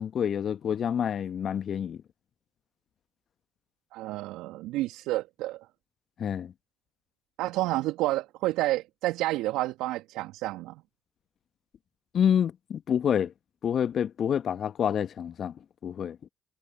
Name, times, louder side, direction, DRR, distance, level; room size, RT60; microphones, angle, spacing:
voice 1, 0.0-2.0 6.2-6.5 12.1-13.3 13.6-15.5 15.8-16.2, left 8 dB, 55° left, 1.0 m, -27 dB
voice 2, 3.9-5.7 7.4-10.8, right 17 dB, 70° right, 1.4 m, -30 dB
hypercardioid pair, 50°, 0 cm